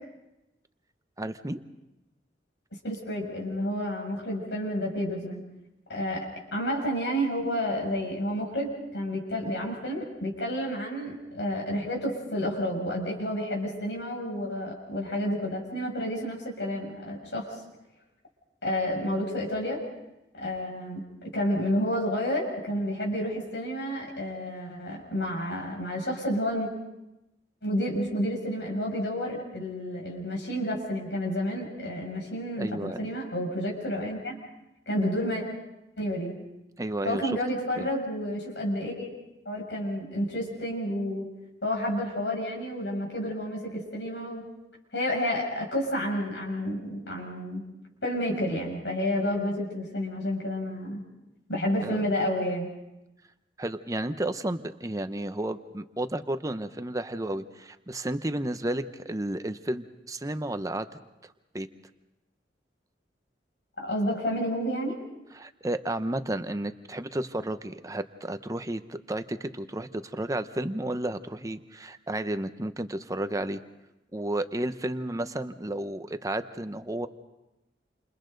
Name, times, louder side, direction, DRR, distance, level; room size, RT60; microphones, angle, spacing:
voice 1, 1.2-1.6 32.6-33.1 36.8-37.3 37.8-37.9 51.8-52.1 53.6-60.9 61.2-61.7 65.3-73.6 74.1-77.1, right 1 dB, 20° right, 10 dB, 0.8 m, -32 dB
voice 2, 2.8-5.4 5.9-6.3 6.5-17.5 18.6-19.8 20.3-21.0 21.3-26.7 27.6-34.3 34.9-35.4 36.0-36.3 37.0-39.1 39.5-41.3 41.6-44.4 44.9-47.6 48.0-51.0 51.5-52.7 63.8-65.0, equal, 80° left, -2 dB, 7.1 m, -30 dB
29.0 x 28.0 x 4.0 m, 0.95 s
head